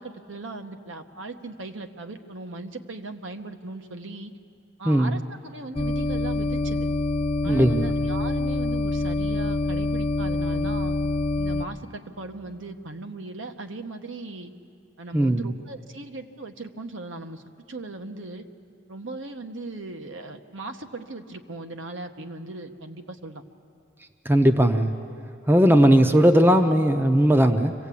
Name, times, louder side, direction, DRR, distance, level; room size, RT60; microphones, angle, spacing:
voice 1, 0.0-4.3 4.8-6.9 7.4-11.0 11.4-14.5 15.0-17.4 17.7-18.4 18.9-23.4, right 2 dB, 70° right, 6 dB, 1.1 m, -38 dB
voice 2, 4.8-5.2 7.4-7.9 15.1-15.5 24.3-24.9 25.5-27.7, equal, 10° right, 8 dB, 0.6 m, -18 dB
sound 1, 5.8-11.7, left 2 dB, 30° left, 0.5 m, -26 dB
25.0 x 16.5 x 8.5 m, 2.5 s
head